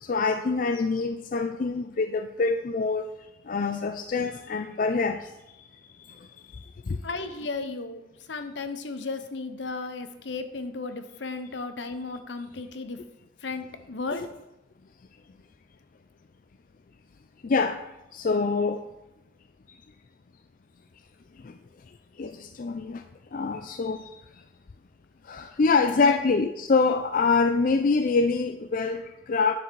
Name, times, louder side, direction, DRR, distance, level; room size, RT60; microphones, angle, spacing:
voice 1, 0.0-3.1 3.5-5.3 6.1-6.2 6.6-7.0 17.4-17.8 18.1-18.8 21.4-21.5 22.2-23.0 23.3-24.0 25.3-29.5, left 4 dB, 50° left, 7 dB, 0.4 m, -25 dB
voice 2, 7.0-8.0 8.3-13.0 13.4-14.2 26.0-26.2, left 3 dB, 75° left, 9 dB, 0.9 m, -34 dB
10.0 x 6.6 x 4.6 m, 0.93 s
head